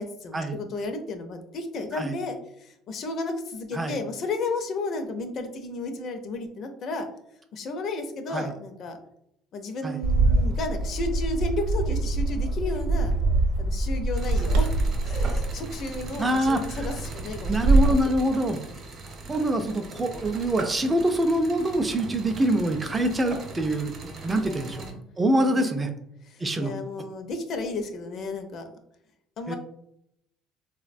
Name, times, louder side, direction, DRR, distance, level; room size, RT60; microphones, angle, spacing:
voice 1, 0.0-7.1 7.5-9.0 9.5-13.1 13.6-18.3 24.3-25.0 25.4-25.7 26.3-28.6 29.4-29.6, left 3 dB, 50° left, 6 dB, 0.4 m, -33 dB
Bird, 10.0-18.0, right 2 dB, 80° right, 0.6 m, -24 dB
sound 1, 14.1-24.9, right 3 dB, 40° right, 0.7 m, -40 dB
voice 2, 16.2-16.8 17.5-18.6 19.3-24.9 25.2-25.9 26.4-26.7 29.5-29.6, right 1 dB, 20° right, 6 dB, 0.3 m, -25 dB
3.2 x 2.1 x 2.5 m, 0.77 s
cardioid pair, 120°, 0 cm